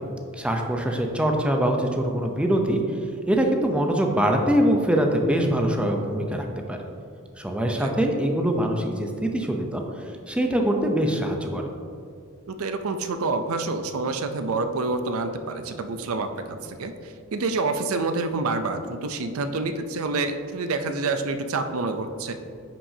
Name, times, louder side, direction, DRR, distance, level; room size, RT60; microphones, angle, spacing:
voice 1, 0.4-2.8 3.3-6.8 7.4-9.8 10.3-11.6, right 1 dB, 5° right, 2 dB, 0.6 m, -23 dB
voice 2, 12.5-22.3, right 3 dB, 85° right, 8 dB, 0.5 m, -28 dB
9.8 x 6.0 x 2.7 m, 2.4 s
head